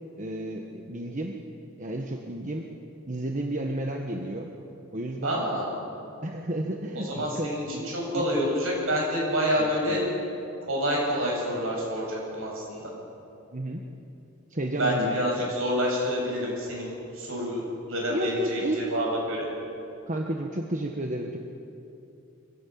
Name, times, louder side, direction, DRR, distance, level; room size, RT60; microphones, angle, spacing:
voice 1, 0.2-1.4 1.8-2.6 3.1-4.5 4.9-5.4 6.2-8.2 9.9-10.0 13.5-13.9 14.5-15.1 15.4-15.5 18.1-18.8 20.1-21.4, right 1 dB, 40° right, 2 dB, 1.3 m, -32 dB
voice 2, 5.2-5.7 6.9-10.0 10.7-12.9 14.7-17.6 17.9-19.5, equal, 70° right, -2 dB, 7.5 m, -28 dB
24.0 x 15.5 x 8.6 m, 2.8 s
head